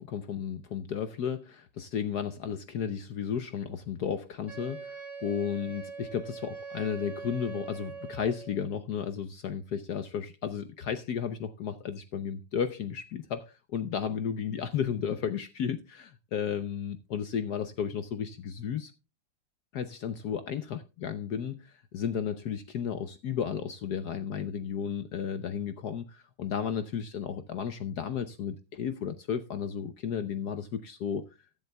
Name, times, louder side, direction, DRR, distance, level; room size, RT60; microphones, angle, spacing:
voice 1, 0.0-18.9 19.7-31.3, left 8 dB, 70° left, 0.9 m, -33 dB
Wind instrument woodwind instrument, 4.5-8.6, right 5 dB, 15° left, 3.3 m, -42 dB
15.0 x 10.5 x 2.2 m
omnidirectional pair, 2.4 m